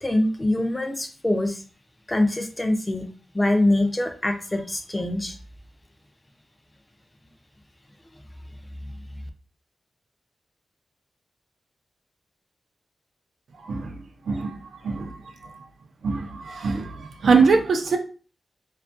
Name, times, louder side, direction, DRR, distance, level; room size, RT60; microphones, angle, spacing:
voice 1, 0.0-1.6 2.1-3.1 3.3-5.4, left 1 dB, 15° left, 6 dB, 0.4 m, -24 dB
voice 2, 16.0-18.0, right 4 dB, 80° right, 4 dB, 0.4 m, -22 dB
2.5 x 2.3 x 2.4 m, 0.38 s
wide cardioid pair, 120°, 0 cm